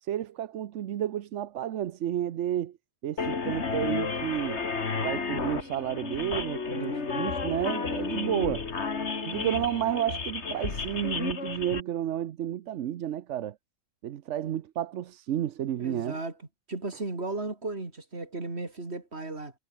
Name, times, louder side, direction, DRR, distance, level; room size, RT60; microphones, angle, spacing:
voice 1, 0.0-2.8 3.0-4.6 5.0-8.7 9.1-13.6 14.0-16.2, right 11 dB, 85° right, 1.1 m, -31 dB
sound 1, 3.2-11.8, left 4 dB, 70° left, 2.3 m, -32 dB
voice 2, 6.7-7.2 15.8-16.3 16.7-19.5, right 3 dB, 65° right, 3.7 m, -35 dB
omnidirectional pair, 1.2 m